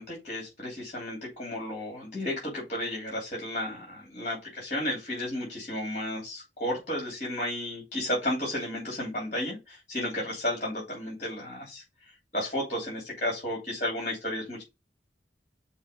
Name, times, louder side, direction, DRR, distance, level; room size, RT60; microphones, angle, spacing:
voice 1, 0.0-14.6, left 1 dB, 40° left, -3 dB, 3.1 m, -33 dB
5.5 x 4.4 x 5.2 m, 0.24 s
head